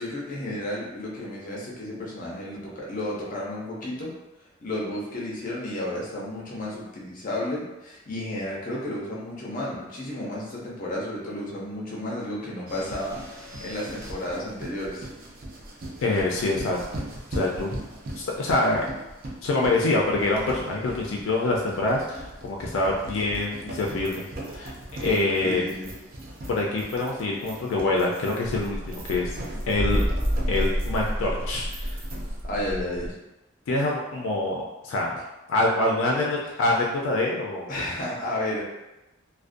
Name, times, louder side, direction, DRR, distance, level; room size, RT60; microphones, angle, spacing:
voice 1, 0.0-4.1 4.6-15.1 25.4-25.9 32.4-33.1 36.4-36.5 37.7-38.6, left 1 dB, 45° left, -5 dB, 0.6 m, -32 dB
sound 1, 12.7-32.5, right 1 dB, 50° right, 0.4 m, -40 dB
voice 2, 16.0-16.8 17.3-17.7 18.2-18.8 19.4-24.2 24.5-24.7 25.0-25.6 26.5-29.3 29.7-30.0 30.5-32.0 33.7-35.2 35.5-37.9, left 2 dB, 90° left, -1 dB, 0.4 m, -25 dB
sound 2, 28.4-33.1, equal, 15° left, 0.9 m, -29 dB
2.4 x 2.1 x 2.5 m, 1.0 s
head